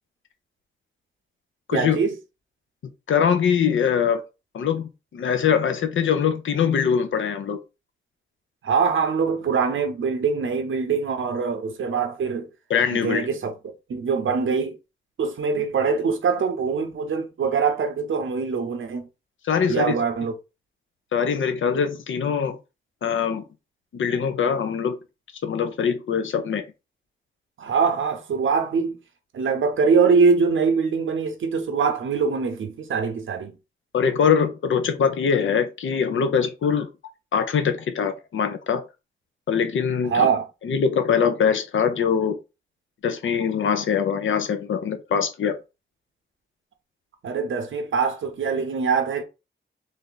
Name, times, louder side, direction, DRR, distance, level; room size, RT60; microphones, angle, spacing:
voice 1, 1.7-2.1 8.6-12.5 12.9-13.5 13.9-14.8 15.2-19.1 19.7-20.3 27.6-29.0 29.3-33.5 40.0-40.5 47.2-49.2, right 5 dB, 85° right, 0.7 m, -23 dB
voice 2, 3.1-4.2 4.5-7.6 12.7-13.3 19.4-19.9 21.1-22.6 23.0-23.4 23.9-25.0 25.4-26.6 33.9-36.9 37.3-38.8 39.5-40.3 40.6-42.4 43.0-45.6, left 7 dB, 85° left, 0.6 m, -22 dB
3.3 x 2.6 x 3.8 m
wide cardioid pair, 165°, 20 cm